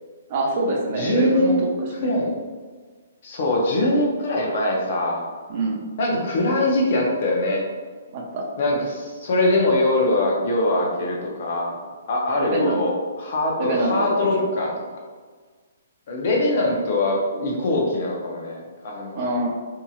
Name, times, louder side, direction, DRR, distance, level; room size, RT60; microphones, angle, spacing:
voice 1, 0.3-1.6 2.0-2.1 5.5-5.8 8.1-8.5 12.4-12.8 13.6-14.5 19.1-19.5, right 2 dB, 40° right, 0 dB, 0.6 m, -25 dB
voice 2, 0.9-1.6 2.0-2.3 3.2-5.2 6.0-7.6 8.6-11.8 12.1-14.7 16.1-19.2, left 1 dB, 55° left, -1 dB, 0.7 m, -22 dB
2.7 x 2.7 x 2.4 m, 1.5 s
hypercardioid pair, 145°, 0 cm